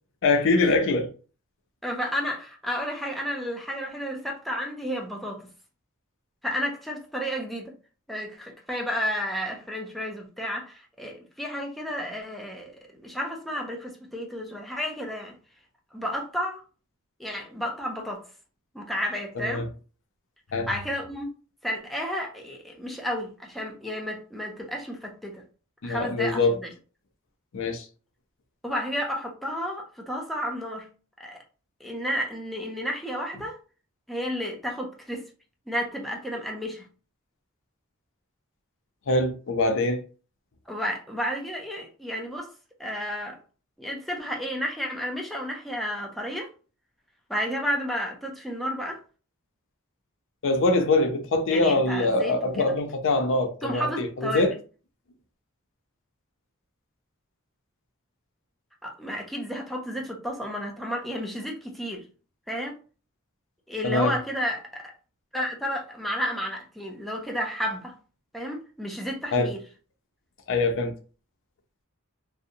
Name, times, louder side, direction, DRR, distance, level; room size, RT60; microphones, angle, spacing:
voice 1, 0.2-1.1 19.4-19.7 20.5-20.7 25.8-26.6 27.5-27.9 39.1-40.0 50.4-54.5 63.8-64.1 69.3-69.5 70.5-70.9, left 2 dB, 60° left, 0.5 m, -23 dB
voice 2, 1.8-5.5 6.4-7.7 8.1-12.7 13.0-15.4 15.9-16.6 17.2-18.2 18.7-19.7 20.7-21.3 21.6-25.4 25.8-26.7 28.6-30.9 31.2-31.4 31.8-33.6 34.1-35.2 35.7-36.9 40.7-42.5 42.8-43.4 43.8-46.5 47.3-49.0 51.5-52.7 53.6-54.6 58.8-62.1 62.5-62.8 63.7-64.9 65.3-68.0 68.3-69.6, equal, ahead, 0.5 m, -32 dB
2.6 x 2.0 x 2.6 m
head